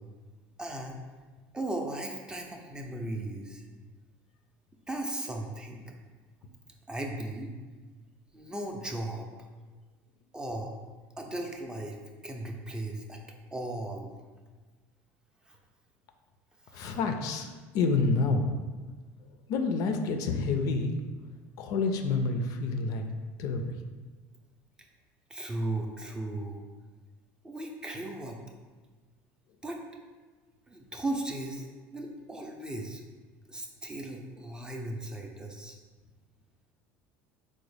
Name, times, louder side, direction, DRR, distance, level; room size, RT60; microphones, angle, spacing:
voice 1, 0.6-1.0 1.5-3.6 4.9-5.8 6.9-7.5 8.3-9.3 10.3-10.8 11.2-12.0 12.2-13.2 13.5-14.1 15.5-15.6 16.7-17.0 25.3-26.6 27.4-28.4 29.6-29.8 30.7-31.7 31.9-33.0 33.5-35.8, right 1 dB, 10° right, 2 dB, 0.4 m, -36 dB
voice 2, 16.7-17.5 17.7-18.5 19.5-20.9 21.6-23.0 23.4-23.6, left 4 dB, 60° left, 5 dB, 0.3 m, -28 dB
3.8 x 2.0 x 3.3 m, 1.4 s
supercardioid pair, 100°, 7 cm